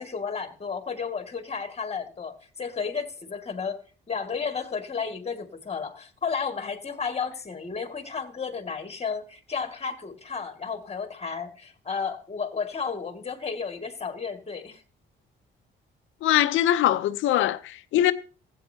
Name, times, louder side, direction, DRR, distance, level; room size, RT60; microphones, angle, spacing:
voice 1, 0.0-3.8 4.1-14.8, left 5 dB, 30° left, 2.2 m, -33 dB
voice 2, 16.2-18.1, left 12 dB, 85° left, 0.8 m, -22 dB
15.5 x 9.3 x 2.9 m
cardioid pair, 90°, 20 cm